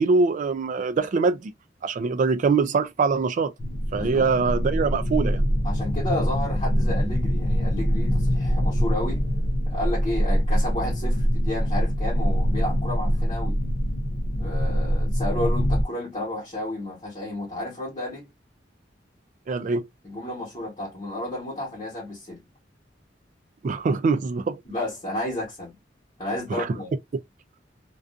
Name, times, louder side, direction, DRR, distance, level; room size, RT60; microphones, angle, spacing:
voice 1, 0.0-1.5 1.8-3.5 3.9-5.4 19.5-19.9 23.6-24.6 26.5-26.8, right 4 dB, 45° right, 0.3 m, -23 dB
sound 1, 3.6-15.8, equal, 50° left, 0.5 m, -24 dB
voice 2, 4.0-4.3 5.6-9.2 9.6-13.6 14.4-18.2 20.0-22.4 24.6-25.8 26.2-26.9, left 1 dB, 30° left, 1.2 m, -32 dB
2.5 x 2.3 x 2.4 m
head